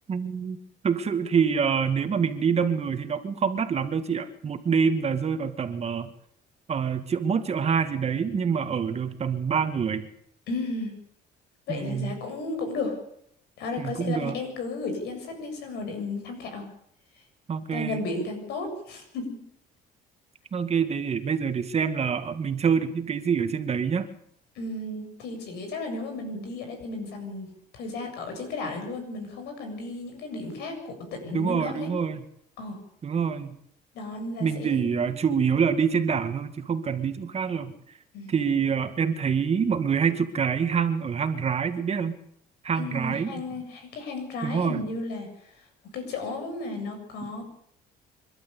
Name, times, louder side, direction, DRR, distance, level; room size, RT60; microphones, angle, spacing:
voice 1, 0.1-0.6 0.8-6.1 6.7-10.1 11.7-12.2 13.8-14.4 17.5-18.0 20.5-24.1 31.3-32.2 33.0-33.6 34.4-37.7 38.3-42.2 42.6-43.4 44.4-44.8 47.2-47.3, right 6 dB, 40° right, 8 dB, 2.1 m, -26 dB
voice 2, 10.5-10.9 11.7-12.9 13.6-16.7 17.7-19.4 24.6-27.5 27.7-31.9 32.6-32.8 33.9-35.2 38.1-38.3 42.8-45.3 45.9-47.4, left 3 dB, 80° left, 5 dB, 7.5 m, -34 dB
26.5 x 12.0 x 8.4 m, 0.71 s
cardioid pair, 110°, 17 cm